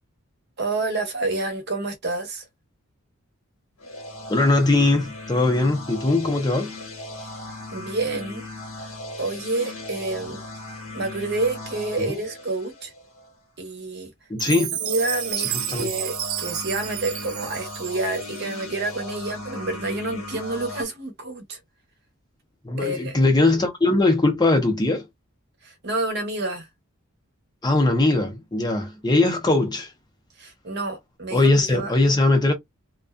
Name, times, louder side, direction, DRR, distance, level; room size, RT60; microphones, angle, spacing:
voice 1, 0.6-2.4 7.2-7.3 7.7-8.4 8.8-10.4 10.9-12.9 13.6-14.1 14.5-21.6 22.8-23.2 25.6-26.7 30.4-31.9, right 2 dB, 50° right, 0.8 m, -29 dB
sound 1, 3.8-13.3 14.8-20.8, left 2 dB, 90° left, 1.2 m, -38 dB
voice 2, 4.3-6.7 14.3-14.8 15.4-15.9 22.6-25.1 27.6-29.9 31.3-32.5, left 2 dB, 20° left, 0.5 m, -20 dB
Chime, 14.4-18.6, right 12 dB, 70° right, 0.4 m, -31 dB
2.5 x 2.2 x 2.2 m
head